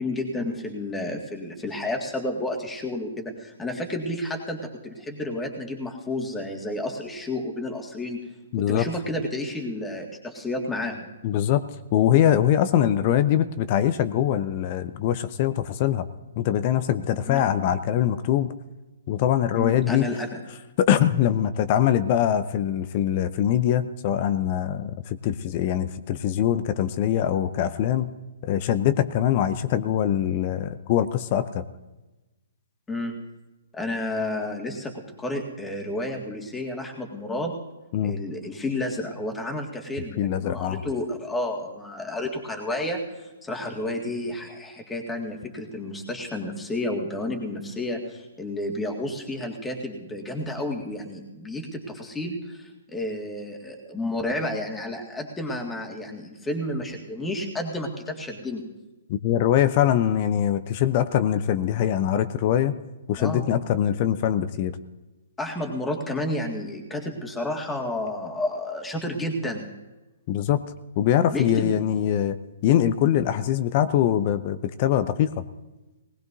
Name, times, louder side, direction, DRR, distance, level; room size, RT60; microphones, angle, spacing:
voice 1, 0.0-8.2 8.6-11.1 17.3-17.5 19.6-20.4 32.9-33.1 33.7-37.5 38.0-58.7 63.2-63.5 65.4-69.6 71.3-71.7, left 1 dB, 10° left, 1 dB, 2.0 m, -31 dB
voice 2, 8.5-8.9 11.2-11.7 11.9-16.1 16.4-18.5 19.1-20.0 20.8-28.1 28.4-31.6 37.9-38.2 40.2-40.8 59.1-62.7 63.1-64.7 70.3-70.6 71.0-72.4 72.6-75.3, left 10 dB, 40° left, 13 dB, 0.6 m, -23 dB
19.5 x 18.0 x 2.7 m, 1.1 s
figure-of-eight pair, 125°, 0 cm